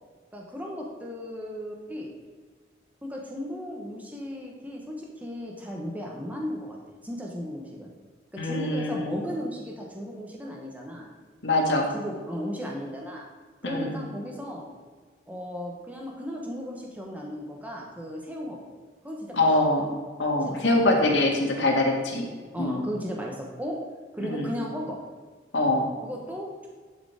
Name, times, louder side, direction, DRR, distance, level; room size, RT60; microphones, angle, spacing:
voice 1, 0.3-2.1 3.0-6.8 7.0-7.9 8.3-11.1 11.9-13.2 13.6-14.6 15.3-18.6 19.0-19.5 20.4-20.6 20.9-21.2 21.5-21.8 22.5-23.8 24.1-25.0 26.0-26.7, equal, 10° right, -1 dB, 1.3 m, -35 dB
voice 2, 8.4-9.1 11.4-11.9 13.6-14.0 19.3-19.9 20.2-22.3 22.6-22.8 24.2-24.5 25.5-25.9, left 2 dB, 90° left, 0 dB, 1.8 m, -24 dB
11.5 x 4.9 x 4.9 m, 1.5 s
head